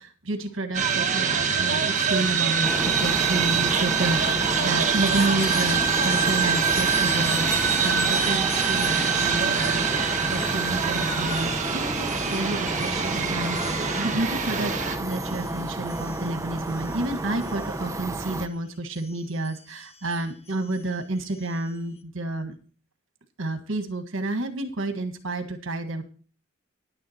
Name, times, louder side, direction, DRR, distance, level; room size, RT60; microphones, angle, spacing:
voice 1, 0.0-22.5 23.4-26.0, right 2 dB, 65° right, 7 dB, 1.5 m, -30 dB
sound 1, 0.7-15.0, right 6 dB, 35° right, 1.5 m, -25 dB
sound 2, 2.6-18.5, right 2 dB, 15° right, 0.5 m, -31 dB
Chime, 4.5-18.5 18.9-21.8, left 4 dB, 30° left, 1.1 m, -40 dB
10.5 x 9.9 x 4.3 m, 0.39 s
head